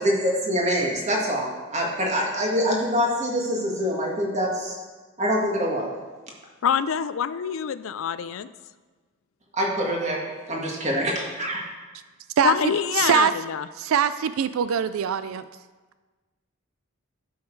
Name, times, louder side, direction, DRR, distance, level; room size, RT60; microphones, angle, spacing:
voice 1, 0.0-4.8 5.2-5.9 9.6-10.2 10.5-11.6, equal, 35° right, -2 dB, 1.8 m, -25 dB
voice 2, 6.6-8.5 12.4-13.7, left 7 dB, 75° left, 14 dB, 0.4 m, -25 dB
voice 3, 12.4-13.3 13.8-15.5, right 8 dB, 85° right, 13 dB, 0.4 m, -23 dB
12.0 x 6.4 x 4.6 m, 1.3 s
head